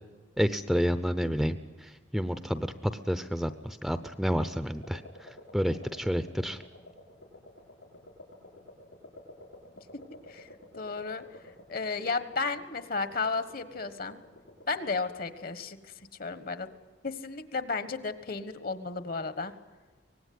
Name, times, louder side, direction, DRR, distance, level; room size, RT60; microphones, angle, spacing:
voice 1, 0.4-6.6, equal, ahead, 11 dB, 0.7 m, -30 dB
sound 1, 4.8-15.1, left 1 dB, 75° left, 6.6 m, -52 dB
voice 2, 10.7-11.2 11.7-14.2 14.7-15.9 16.2-16.7 17.0-19.5, left 4 dB, 50° left, 12 dB, 1.5 m, -33 dB
24.5 x 19.5 x 9.6 m, 1.4 s
head